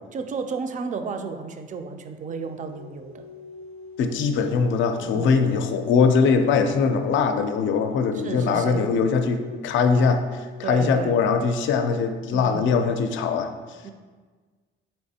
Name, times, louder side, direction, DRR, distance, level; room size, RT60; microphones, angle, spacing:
voice 1, 0.1-3.2 5.0-5.4 8.1-8.9 10.6-11.2 12.3-12.8 13.8-13.9, right 4 dB, 40° right, 7 dB, 0.4 m, -32 dB
sound 1, 2.1-11.2, left 3 dB, 85° right, 0.8 m, -43 dB
voice 2, 4.0-13.5, left 5 dB, 75° left, 7 dB, 0.4 m, -22 dB
4.4 x 3.2 x 2.7 m, 1.4 s
cardioid pair, 90°, 20 cm